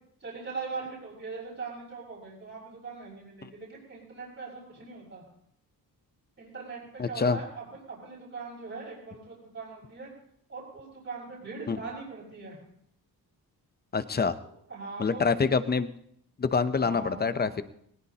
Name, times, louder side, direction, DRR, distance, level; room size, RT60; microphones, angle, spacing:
voice 1, 0.2-5.2 6.4-10.1 10.5-12.6 14.7-15.5 16.8-17.6, right 4 dB, 40° right, -8 dB, 6.1 m, -41 dB
voice 2, 7.0-7.4 11.7-11.8 13.9-14.4 15.0-15.9 16.4-17.6, left 5 dB, 25° left, 11 dB, 0.7 m, -26 dB
21.5 x 20.0 x 2.9 m, 0.70 s
wide cardioid pair, 170°, 38 cm